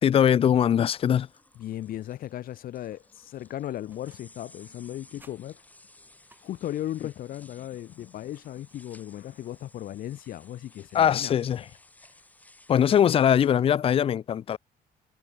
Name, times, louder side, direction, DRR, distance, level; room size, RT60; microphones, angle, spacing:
voice 1, 0.0-1.3 10.9-11.6 12.7-14.6, left 9 dB, 35° left, 0.5 m, -21 dB
sound 1, 1.0-13.5, left 2 dB, 10° left, 6.2 m, -57 dB
voice 2, 1.6-5.6 6.4-11.3, left 12 dB, 55° left, 0.9 m, -36 dB
sound 2, 3.9-4.5 4.8-6.9 8.6-9.6, right 2 dB, 10° right, 6.5 m, -62 dB
cardioid pair, 165°, 17 cm